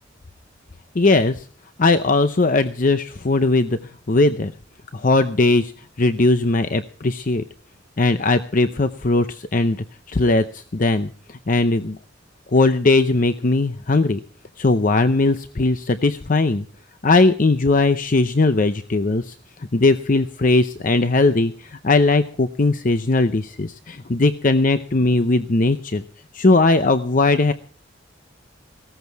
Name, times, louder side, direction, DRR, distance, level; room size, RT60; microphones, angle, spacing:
voice 1, 0.9-1.4 1.8-3.8 4.1-4.5 4.9-5.7 6.0-7.4 8.0-12.0 12.5-14.2 14.6-16.6 17.0-19.3 19.7-26.0 26.3-27.5, left 2 dB, 45° left, 10 dB, 0.7 m, -19 dB
17.5 x 14.0 x 4.7 m, 0.42 s
head